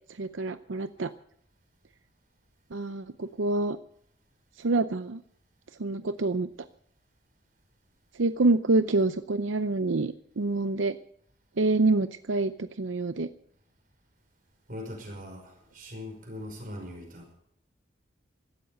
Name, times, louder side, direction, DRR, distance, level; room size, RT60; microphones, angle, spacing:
voice 1, 0.2-1.1 2.7-3.8 4.6-5.2 5.8-6.5 8.2-11.0 11.6-13.3, right 2 dB, 90° right, 11 dB, 0.7 m, -26 dB
voice 2, 14.7-17.3, left 1 dB, 45° right, 3 dB, 5.6 m, -41 dB
17.0 x 13.0 x 6.7 m, 0.68 s
head